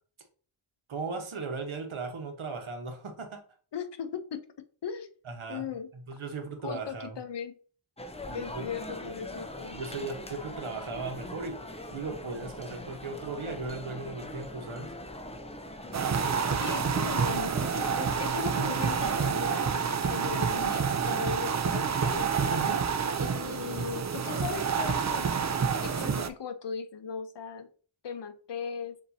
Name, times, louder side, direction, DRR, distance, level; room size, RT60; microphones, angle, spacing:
voice 1, 0.9-3.4 5.3-5.6 5.9-7.2 8.3-8.7 9.7-11.6 11.9-14.9 22.5-22.8, right 4 dB, 75° right, 4 dB, 1.1 m, -37 dB
voice 2, 3.7-4.5 4.8-5.1 5.5-5.9 6.6-7.6 8.3-9.8 16.6-22.3 23.2-25.3 25.8-27.7 28.0-29.0, left 7 dB, 55° left, 9 dB, 0.7 m, -38 dB
sound 1, 8.0-19.3, left 1 dB, 15° left, 0.6 m, -42 dB
sound 2, 15.9-26.3, right 6 dB, 35° right, 0.5 m, -28 dB
7.2 x 2.7 x 2.7 m, 0.42 s
wide cardioid pair, 60°, 49 cm